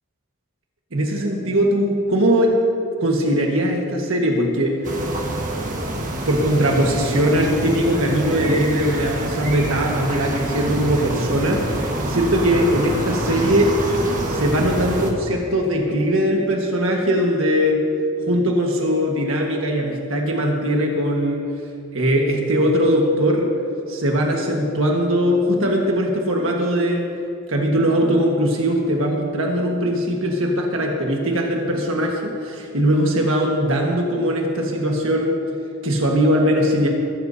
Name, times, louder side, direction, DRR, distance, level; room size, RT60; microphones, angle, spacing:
voice 1, 0.9-2.5 3.0-4.8 6.3-13.8 14.3-17.8 18.2-21.5 21.9-23.5 23.9-27.1 27.5-35.4 35.8-36.9, equal, 65° right, 0 dB, 1.5 m, -20 dB
sound 1, 4.8-15.1, right 1 dB, 35° right, 1.5 m, -26 dB
22.5 x 12.5 x 2.8 m, 2.5 s
head